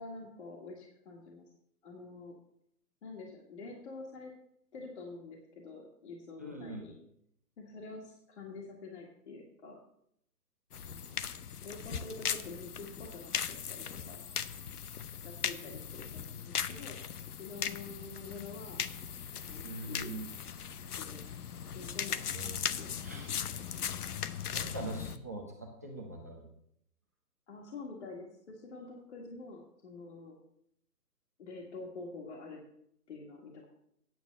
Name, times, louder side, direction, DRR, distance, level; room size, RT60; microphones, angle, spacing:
voice 1, 0.0-1.4 1.8-2.4 3.0-4.3 4.7-7.0 7.6-9.8 10.9-11.3 11.6-14.2 15.2-17.0 17.3-18.8 19.4-20.2 21.0-21.3 21.7-23.8 27.5-30.4 31.4-32.6 33.1-33.7, left 3 dB, 45° left, -1 dB, 1.8 m, -47 dB
voice 2, 6.4-6.9 19.6-20.3 22.3-22.6 23.0-23.3 24.5-26.4, right 2 dB, 10° right, 0 dB, 0.6 m, -42 dB
sound 1, 10.7-25.2, left 8 dB, 70° left, 0.8 m, -38 dB
9.3 x 6.6 x 6.5 m, 0.74 s
hypercardioid pair, 165°, 47 cm